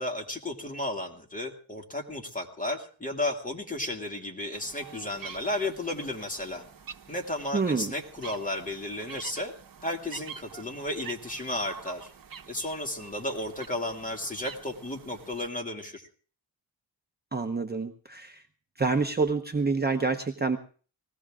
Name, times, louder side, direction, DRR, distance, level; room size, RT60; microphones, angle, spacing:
voice 1, 0.0-6.6 7.1-9.5 9.8-12.1 12.5-16.1, left 1 dB, 20° left, 2 dB, 2.4 m, -33 dB
sound 1, 4.5-15.5, right 6 dB, 50° right, 1.2 m, -47 dB
voice 2, 7.5-7.9 17.3-18.5 18.8-20.6, right 4 dB, 20° right, 5 dB, 0.9 m, -27 dB
20.0 x 16.5 x 3.7 m, 0.41 s
wide cardioid pair, 140°, 43 cm